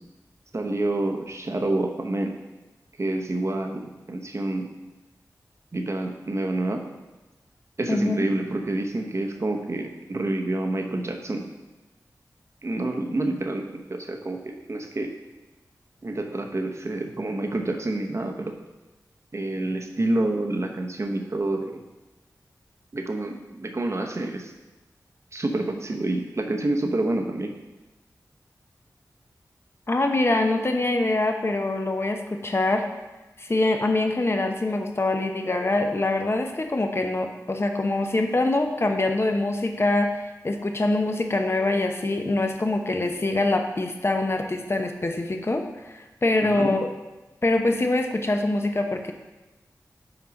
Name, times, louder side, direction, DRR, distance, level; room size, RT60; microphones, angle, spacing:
voice 1, 0.5-2.3 3.0-4.7 5.7-6.8 7.8-11.4 12.6-15.1 16.0-18.5 19.3-21.8 22.9-24.5 25.3-27.5 46.4-46.7, right 2 dB, 45° right, 3 dB, 0.9 m, -28 dB
voice 2, 7.9-8.3 29.9-32.8 33.4-46.9 47.4-49.1, left 2 dB, 40° left, 4 dB, 0.8 m, -24 dB
5.9 x 4.4 x 5.2 m, 1.1 s
cardioid pair, 45°, 7 cm